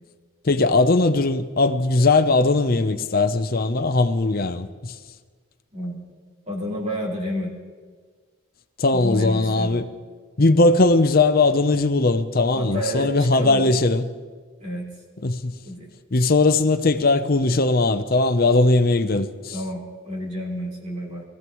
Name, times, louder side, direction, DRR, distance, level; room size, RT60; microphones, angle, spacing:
voice 1, 0.4-4.9 8.8-9.8 10.4-14.0 15.2-15.5 16.1-19.6, left 3 dB, 45° left, 0.7 m, -19 dB
voice 2, 6.5-7.6 8.9-9.9 12.5-13.6 14.6-14.9 15.6-15.9 19.5-21.2, equal, 30° right, 3.5 m, -30 dB
24.5 x 15.0 x 3.1 m
head